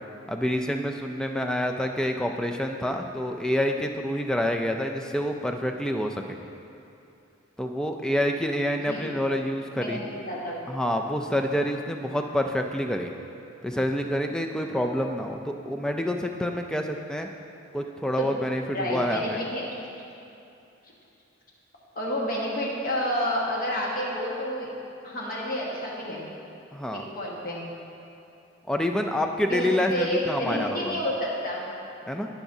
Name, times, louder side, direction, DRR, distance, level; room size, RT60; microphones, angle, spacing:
voice 1, 0.3-6.4 7.6-10.0 10.7-13.1 13.6-17.3 17.7-19.4 26.7-27.0 28.7-30.9 32.1-32.3, left 1 dB, 5° left, 3 dB, 0.3 m, -27 dB
voice 2, 8.8-9.1 9.7-10.6 18.2-18.3 18.7-19.7 21.9-24.7 25.0-26.3 26.9-27.7 29.5-31.6, equal, 45° left, -4 dB, 1.4 m, -30 dB
17.0 x 5.8 x 2.7 m, 2.7 s
head